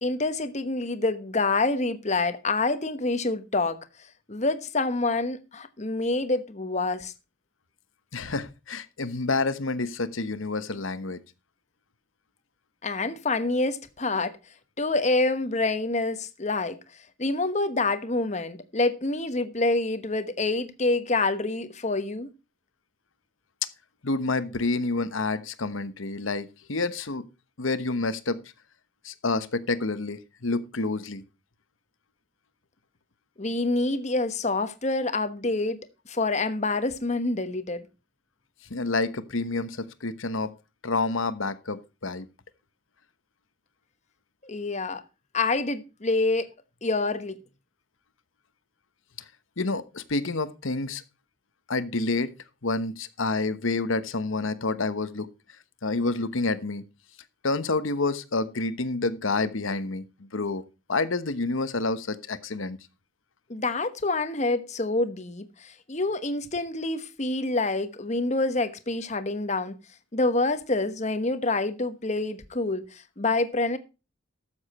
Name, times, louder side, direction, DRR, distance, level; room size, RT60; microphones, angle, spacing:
voice 1, 0.0-3.8 4.3-7.1 12.8-14.4 14.8-16.8 17.2-22.3 33.4-35.8 36.1-37.8 44.4-45.0 45.3-46.5 46.8-47.4 63.5-69.8 70.1-73.8, left 2 dB, 35° left, 1.1 m, -27 dB
voice 2, 8.1-11.2 24.0-27.3 27.6-28.4 29.0-31.2 38.7-40.5 40.8-42.3 49.6-51.0 51.7-52.3 52.6-55.3 55.8-56.8 57.4-60.0 60.3-60.6 60.9-62.8, left 3 dB, 75° left, 1.1 m, -28 dB
13.0 x 7.3 x 4.3 m
head